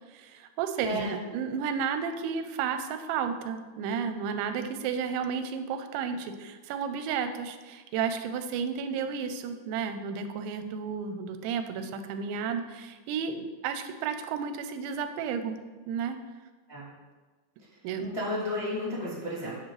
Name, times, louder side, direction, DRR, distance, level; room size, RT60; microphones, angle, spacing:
voice 1, 0.1-15.6 15.9-16.2 17.8-18.1, right 6 dB, 85° right, 9 dB, 3.0 m, -32 dB
voice 2, 0.8-1.1 16.7-16.9 18.0-19.6, left 1 dB, 30° left, -9 dB, 0.5 m, -32 dB
9.9 x 7.5 x 3.2 m, 1.3 s
omnidirectional pair, 5.2 m